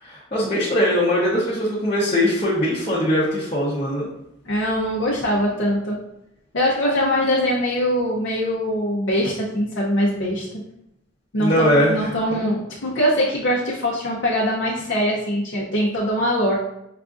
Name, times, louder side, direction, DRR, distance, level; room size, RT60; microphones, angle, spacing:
voice 1, 0.0-4.1 11.4-12.5, equal, 30° left, -10 dB, 0.7 m, -21 dB
voice 2, 4.5-6.0 6.5-10.5 11.3-16.5, equal, 65° left, -4 dB, 0.6 m, -22 dB
5.6 x 2.4 x 2.4 m, 0.81 s
head